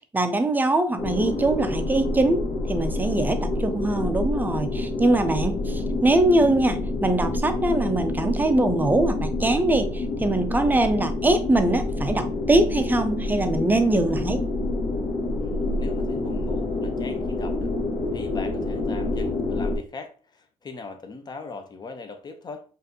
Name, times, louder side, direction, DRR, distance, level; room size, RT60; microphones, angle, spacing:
voice 1, 0.1-14.4, right 2 dB, 15° right, 8 dB, 0.5 m, -22 dB
sound 1, 1.0-19.8, left 2 dB, 55° left, 1.3 m, -27 dB
voice 2, 15.8-17.7 18.1-22.6, left 4 dB, 30° left, 6 dB, 0.7 m, -40 dB
4.9 x 2.6 x 2.8 m, 0.39 s
cardioid pair, 100°, 13 cm